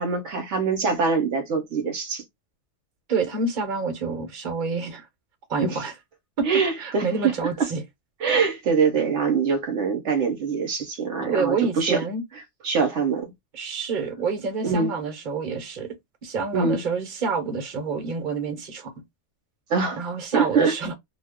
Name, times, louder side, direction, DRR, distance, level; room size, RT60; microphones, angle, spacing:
voice 1, 0.0-2.2 5.6-5.9 6.4-7.3 7.6-7.7 8.2-12.0 12.6-13.3 14.6-14.9 16.5-16.8 19.7-20.1 20.3-20.8, right 5 dB, 75° right, 1.0 m, -23 dB
voice 2, 3.1-5.0 5.5-5.9 6.4-6.5 6.8-7.8 11.3-12.2 13.5-16.0 16.2-18.9 20.0-20.9, right 4 dB, 45° right, 0.9 m, -27 dB
2.4 x 2.2 x 3.5 m
omnidirectional pair, 1.2 m